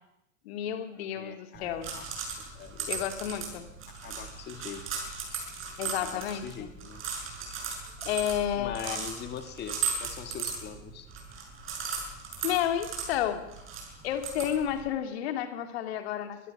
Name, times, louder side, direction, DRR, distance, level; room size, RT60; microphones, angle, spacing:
voice 1, 0.4-1.9 2.9-3.7 5.8-6.7 7.5-7.7 8.0-9.0 12.4-13.4 14.0-16.4, left 10 dB, 55° left, 7 dB, 2.6 m, -31 dB
voice 2, 1.1-2.9 4.0-4.8 6.0-7.0 8.6-11.1, left 8 dB, 25° left, 7 dB, 2.1 m, -42 dB
sound 1, 1.5-14.9, right 5 dB, 35° right, 7.5 m, -37 dB
24.5 x 21.0 x 6.0 m, 0.85 s
figure-of-eight pair, 90°, 37 cm